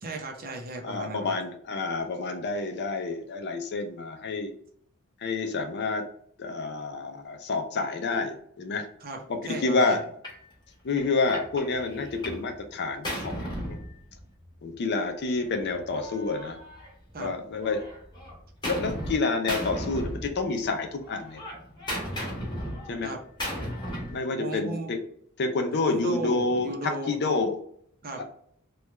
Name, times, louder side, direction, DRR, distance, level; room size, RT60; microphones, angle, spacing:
voice 1, 0.0-1.4 9.0-10.0 17.1-17.3 23.0-23.2 24.4-24.9 25.8-27.2 28.0-28.2, right 2 dB, 40° right, 2 dB, 0.6 m, -36 dB
voice 2, 0.8-4.5 5.2-6.0 6.4-8.9 9.3-10.0 10.8-13.8 14.6-16.6 17.2-17.8 18.6-21.4 22.9-23.1 24.1-25.0 25.4-27.6, left 3 dB, 50° left, 6 dB, 0.5 m, -28 dB
Gunshot gunfire, 10.2-10.4 11.0-12.5 12.8-14.5 15.4-17.2 17.6-19.2 19.5-20.7 21.0-24.2, equal, 20° left, 1.0 m, -35 dB
3.2 x 2.3 x 3.1 m, 0.64 s
head